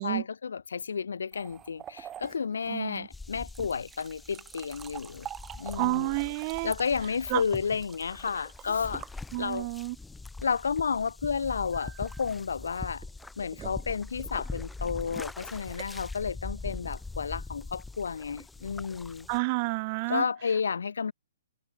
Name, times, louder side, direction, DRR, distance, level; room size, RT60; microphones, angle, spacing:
voice 1, 0.0-5.3 5.6-6.2 6.6-9.1 9.4-9.7 10.4-13.0 13.4-19.3 20.1-21.1, left 6 dB, 75° left, 1.1 m, -31 dB
sound 1, 1.3-9.9 11.7-17.4, right 10 dB, 20° right, 2.3 m, -47 dB
voice 2, 2.7-3.1 5.8-6.7 7.3-7.4 9.3-10.0 19.3-20.2, right 28 dB, 35° right, 0.7 m, -30 dB
sound 2, 3.1-19.4, left 3 dB, 5° left, 1.3 m, -42 dB
figure-of-eight pair, 130°, 0 cm